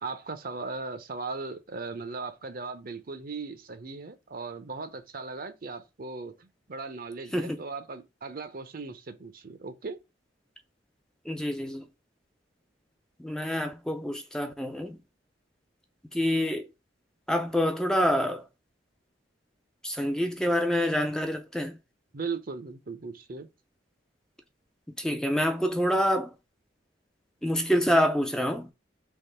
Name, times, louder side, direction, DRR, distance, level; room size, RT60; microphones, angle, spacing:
voice 1, 0.0-10.0 22.1-23.5, right 4 dB, 50° right, 0.7 m, -38 dB
voice 2, 11.3-11.8 13.2-15.0 16.1-16.6 17.3-18.4 19.8-21.8 25.0-26.3 27.4-28.7, equal, 5° left, 0.5 m, -27 dB
3.6 x 3.0 x 4.4 m
head